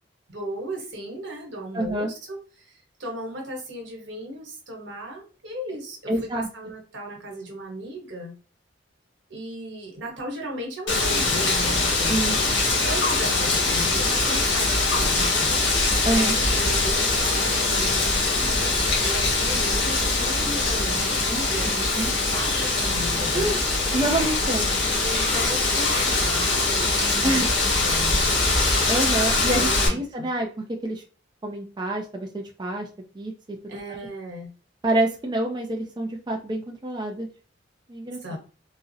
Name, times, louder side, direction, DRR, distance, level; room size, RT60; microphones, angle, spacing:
voice 1, 0.3-8.3 9.3-12.3 12.8-18.0 18.4-21.2 21.5-23.6 25.0-28.3 29.5-30.3 33.7-34.5 38.2-38.4, right 1 dB, 70° right, 1 dB, 1.1 m, -36 dB
voice 2, 1.7-2.1 6.1-6.5 12.1-12.4 16.0-16.3 21.3-21.5 21.9-22.1 23.3-23.6 23.9-24.7 27.2-27.5 28.9-30.5 30.8-31.0 31.4-32.9 33.1-33.3 33.7-34.0 34.8-37.3 37.9-38.4, right 1 dB, 25° right, 1 dB, 0.4 m, -27 dB
Wind, 10.9-29.9, left 3 dB, 80° left, 1.3 m, -22 dB
3.7 x 2.0 x 2.6 m, 0.37 s
head